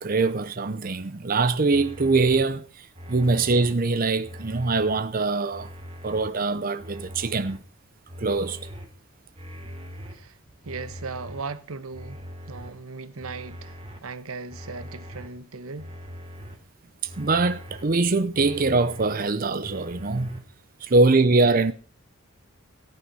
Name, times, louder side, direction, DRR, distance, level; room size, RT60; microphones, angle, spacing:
voice 1, 0.0-5.7 6.0-7.6 8.2-8.6 17.0-20.4 20.8-21.7, right 3 dB, 40° right, 0.6 m, -23 dB
sound 1, 1.7-2.4 2.9-3.7 4.2-5.0 5.5-6.3 6.8-7.6 8.1-8.9 9.3-10.1 10.6-11.4 11.9-12.7 13.2-14.0 14.5-15.3 15.8-16.5 17.0-17.8 18.3-19.1 19.6-20.4, equal, 25° right, 3.1 m, -41 dB
voice 2, 10.6-15.9 20.8-20.9, right 4 dB, 85° right, 1.0 m, -38 dB
14.5 x 9.1 x 5.5 m
head